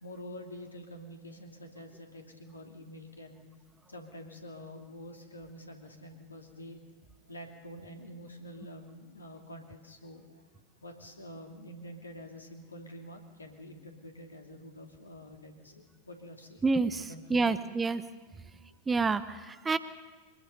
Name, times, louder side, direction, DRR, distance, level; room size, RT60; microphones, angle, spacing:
voice 1, 0.0-3.4 3.9-6.8 7.3-10.4 10.8-16.6 16.9-17.6, equal, 80° left, 4 dB, 2.9 m, -47 dB
voice 2, 16.6-17.0 17.3-18.0 18.9-19.8, right 4 dB, 15° right, 14 dB, 0.8 m, -28 dB
24.0 x 21.5 x 5.5 m, 1.3 s
figure-of-eight pair, 90°, 0 cm